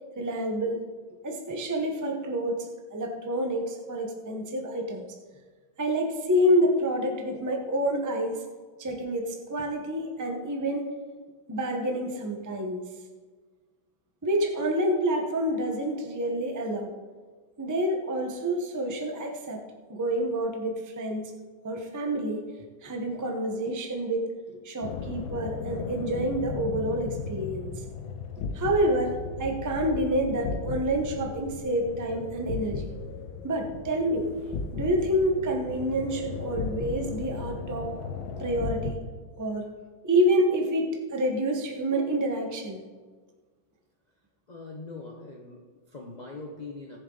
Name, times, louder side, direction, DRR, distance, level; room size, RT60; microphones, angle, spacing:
voice 1, 0.1-0.8 1.2-2.6 2.9-5.1 5.8-8.4 8.8-10.9 11.5-12.8 14.2-16.9 17.6-19.6 19.9-21.3 21.6-22.4 22.8-24.3 24.6-27.7 28.5-32.9 33.4-34.3 34.7-37.9 38.4-39.0 39.4-39.7 40.0-42.8, right 1 dB, 15° right, 2 dB, 0.8 m, -28 dB
sound 1, 24.8-38.9, left 5 dB, 75° left, 1.6 m, -36 dB
voice 2, 44.5-47.0, left 3 dB, 40° left, 1 dB, 0.6 m, -42 dB
18.5 x 7.2 x 4.0 m, 1.5 s
omnidirectional pair, 2.2 m